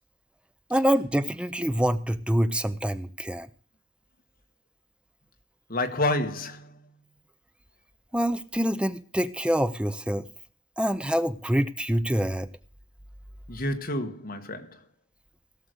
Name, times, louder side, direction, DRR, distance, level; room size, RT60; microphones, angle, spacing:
voice 1, 0.7-3.5 8.1-10.3 10.8-12.5, equal, 5° right, 0.5 m, -26 dB
voice 2, 5.7-6.8 13.5-14.8, left 1 dB, 50° left, 1.6 m, -29 dB
17.0 x 6.6 x 6.4 m
head